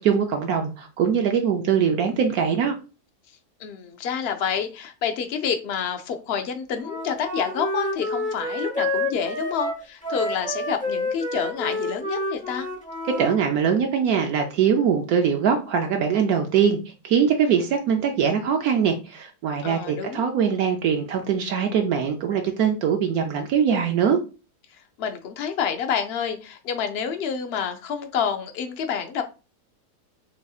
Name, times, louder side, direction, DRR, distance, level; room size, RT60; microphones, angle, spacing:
voice 1, 0.0-2.8 13.1-16.8 17.0-24.2, right 7 dB, 75° right, 4 dB, 1.0 m, -22 dB
voice 2, 3.6-12.7 19.6-20.2 24.7-29.2, left 7 dB, 85° left, 6 dB, 0.5 m, -28 dB
Wind instrument woodwind instrument, 6.8-13.4, left 1 dB, 10° left, 0.5 m, -29 dB
6.2 x 2.7 x 2.3 m, 0.32 s
omnidirectional pair, 1.7 m